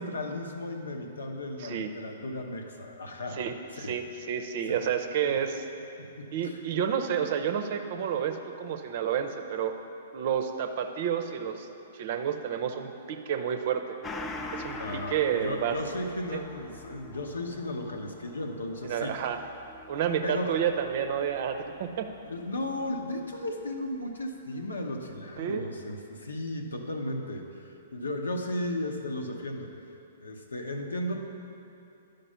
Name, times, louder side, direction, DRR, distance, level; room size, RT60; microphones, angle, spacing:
voice 1, 0.0-3.4 3.8-4.0 4.7-4.8 6.0-6.6 14.8-19.2 20.2-20.6 22.3-29.7 30.2-31.2, left 1 dB, 70° left, 3 dB, 0.9 m, -35 dB
voice 2, 1.6-1.9 3.4-5.6 6.3-9.8 10.1-11.7 11.9-13.8 14.5-15.8 16.3-16.4 18.8-19.4 19.9-22.1 25.4-25.7, right 8 dB, 45° right, 6 dB, 0.6 m, -30 dB
Gong, 14.0-23.0 23.3-23.4, left 2 dB, 15° left, 0.5 m, -44 dB
11.0 x 5.3 x 5.5 m, 2.8 s
figure-of-eight pair, 115°, 0 cm